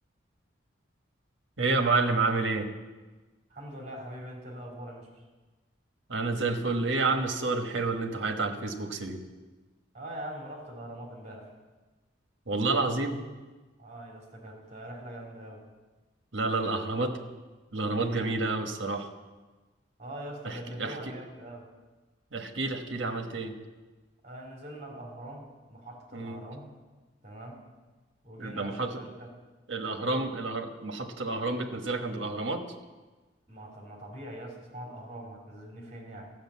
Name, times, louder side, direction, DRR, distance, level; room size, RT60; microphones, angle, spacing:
voice 1, 1.6-2.7 6.1-9.2 12.5-13.2 16.3-17.1 17.7-19.1 20.4-21.1 22.3-23.5 26.1-26.4 28.4-29.0 29.7-32.6, right 3 dB, 70° right, 4 dB, 1.3 m, -29 dB
voice 2, 3.5-5.1 9.9-11.5 13.8-15.6 16.4-17.0 18.0-18.3 20.0-21.7 24.2-26.7 27.2-27.6 28.2-29.3 30.0-30.2 33.5-36.3, right 1 dB, 35° right, -1 dB, 3.1 m, -43 dB
13.0 x 6.6 x 8.4 m, 1.2 s
head